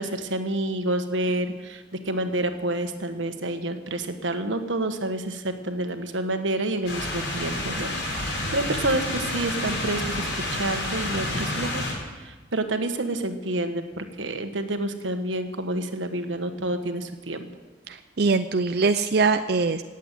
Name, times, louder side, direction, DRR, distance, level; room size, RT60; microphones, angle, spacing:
voice 1, 0.0-11.8 12.2-17.5, right 1 dB, 90° right, 7 dB, 1.5 m, -29 dB
sound 1, 6.9-11.9, left 1 dB, 75° left, 5.1 m, -29 dB
voice 2, 17.9-19.8, right 4 dB, 55° right, 8 dB, 0.5 m, -22 dB
17.0 x 8.3 x 9.4 m, 1.3 s
head